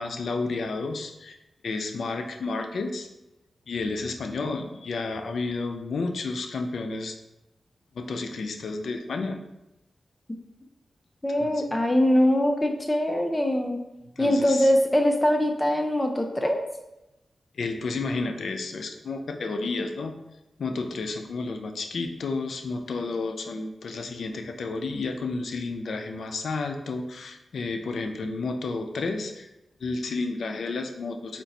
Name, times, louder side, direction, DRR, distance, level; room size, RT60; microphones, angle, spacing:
voice 1, 0.0-1.4 1.6-3.1 3.7-7.2 7.9-9.4 11.4-11.5 14.2-14.7 17.5-20.2 20.6-29.5 29.8-31.4, left 3 dB, 85° left, 6 dB, 0.4 m, -31 dB
voice 2, 11.2-13.8 14.2-16.6, left 1 dB, 15° left, 3 dB, 0.6 m, -22 dB
4.4 x 2.5 x 4.0 m, 0.92 s
wide cardioid pair, 90°, 0 cm